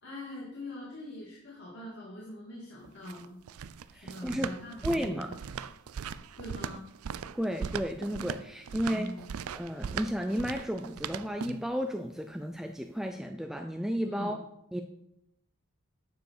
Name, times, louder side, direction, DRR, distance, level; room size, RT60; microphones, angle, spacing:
voice 1, 0.0-3.4 3.9-5.2 6.4-6.8 8.9-9.3 14.0-14.3, left 1 dB, 50° left, -6 dB, 2.4 m, -43 dB
sound 1, 2.8-11.7, right 7 dB, 75° right, 0.4 m, -39 dB
voice 2, 3.9-4.5 4.8-5.4 7.3-9.2 9.5-14.4 14.7-14.8, equal, ahead, 5 dB, 0.4 m, -33 dB
9.4 x 6.8 x 4.8 m, 0.80 s
head